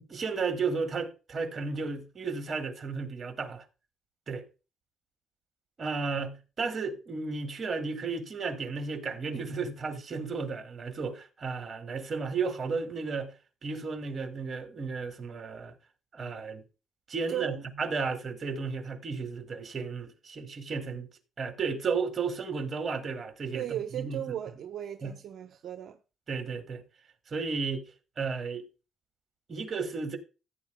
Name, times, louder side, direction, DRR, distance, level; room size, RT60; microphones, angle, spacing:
voice 1, 0.0-3.6 4.3-4.5 5.8-13.3 13.6-15.7 16.1-16.6 17.1-21.1 21.4-24.2 25.0-25.2 26.3-26.8 27.3-27.8 28.2-28.6 29.5-30.2, right 4 dB, 45° right, 2.3 m, -33 dB
voice 2, 17.3-17.6 23.5-26.0, right 11 dB, 70° right, 0.8 m, -36 dB
15.5 x 9.1 x 2.2 m
cardioid pair, 90°, 0 cm